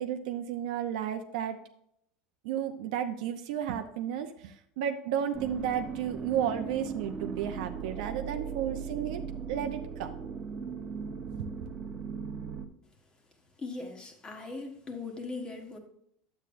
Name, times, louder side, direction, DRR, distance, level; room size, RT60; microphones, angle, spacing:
voice 1, 0.0-1.6 2.4-10.2, right 9 dB, 75° right, 6 dB, 0.6 m, -33 dB
sound 1, 5.3-12.7, right 6 dB, 25° right, 1.0 m, -38 dB
voice 2, 13.6-15.8, left 3 dB, 20° left, 5 dB, 1.3 m, -39 dB
10.0 x 7.9 x 2.6 m, 0.72 s
supercardioid pair, 140°, 4 cm